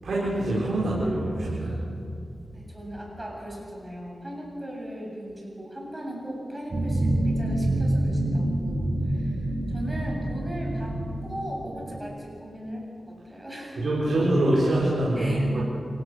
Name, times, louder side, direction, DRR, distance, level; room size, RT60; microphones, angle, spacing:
voice 1, 0.0-1.8 13.8-15.6, right 1 dB, 75° right, -5 dB, 4.8 m, -24 dB
voice 2, 2.5-13.9 15.1-15.6, equal, 20° right, -1 dB, 7.7 m, -38 dB
sound 1, 6.7-12.0, right 1 dB, 45° right, 5.5 m, -27 dB
28.5 x 17.0 x 6.6 m, 2.5 s
cardioid pair, 60°, 0 cm